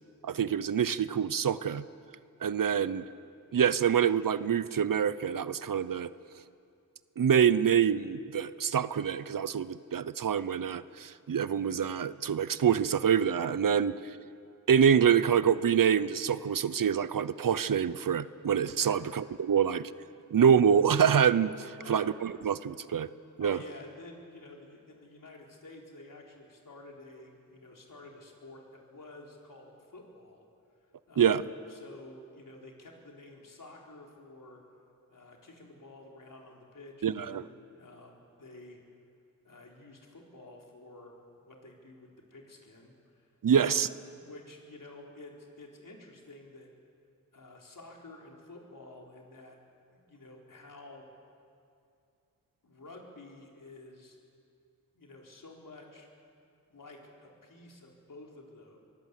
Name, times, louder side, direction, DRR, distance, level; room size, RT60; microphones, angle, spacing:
voice 1, 0.2-1.8 2.4-3.0 3.5-6.1 7.2-13.9 14.7-19.9 20.3-23.1 23.4-23.6 31.2-31.4 37.0-37.4 43.4-43.9, right 8 dB, 70° right, 16 dB, 0.8 m, -26 dB
voice 2, 2.6-2.9 18.8-19.1 21.8-22.1 23.4-30.5 31.1-34.6 35.1-38.8 39.4-46.7 47.3-49.6 49.9-51.1 52.6-54.2 54.9-56.1 56.7-58.8, left 2 dB, 70° left, -1 dB, 4.2 m, -51 dB
24.0 x 18.0 x 8.3 m, 2.5 s
wide cardioid pair, 60°, 34 cm